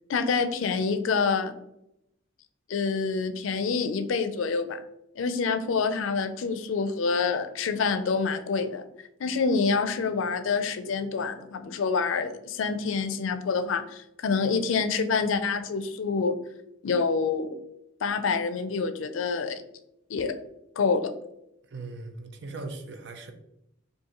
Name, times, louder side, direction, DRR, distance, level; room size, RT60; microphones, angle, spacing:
voice 1, 0.1-1.5 2.7-4.8 5.2-8.8 9.2-16.4 16.8-17.5 18.0-19.6 20.1-20.3 20.8-21.1, left 5 dB, 80° left, 9 dB, 0.4 m, -27 dB
voice 2, 21.7-23.3, right 3 dB, 60° right, 6 dB, 0.5 m, -39 dB
4.7 x 2.6 x 3.0 m, 0.81 s
head